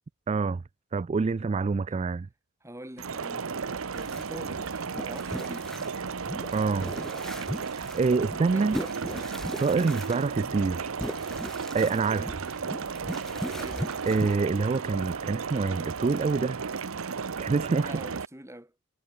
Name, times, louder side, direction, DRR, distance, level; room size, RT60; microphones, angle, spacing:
voice 1, 0.3-0.6 0.9-2.3 6.5-6.9 7.8-8.8 9.6-10.9 11.7-12.3 14.1-16.6 17.4-17.9, right 4 dB, 30° right, 0.3 m, -26 dB
voice 2, 2.6-5.8 8.0-9.0 12.1-12.3 13.5-14.0 17.8-18.7, right 1 dB, 15° right, 6.0 m, -45 dB
sound 1, 3.0-18.3, right 5 dB, 75° right, 0.8 m, -34 dB
sound 2, 3.9-14.4, equal, ahead, 0.7 m, -39 dB
head